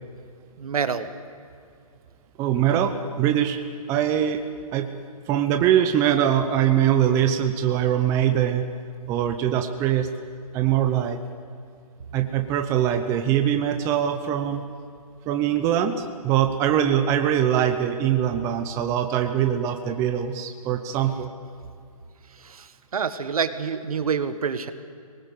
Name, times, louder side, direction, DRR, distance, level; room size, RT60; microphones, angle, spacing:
voice 1, 0.6-1.1 22.3-24.7, right 6 dB, 70° right, 11 dB, 1.7 m, -27 dB
voice 2, 2.4-3.6 3.9-4.4 4.7-4.9 5.3-8.6 9.1-10.1 10.5-11.2 12.1-14.6 15.3-21.3, right 10 dB, 15° right, 6 dB, 0.8 m, -22 dB
25.5 x 19.5 x 8.3 m, 2.4 s
hypercardioid pair, 155°, 19 cm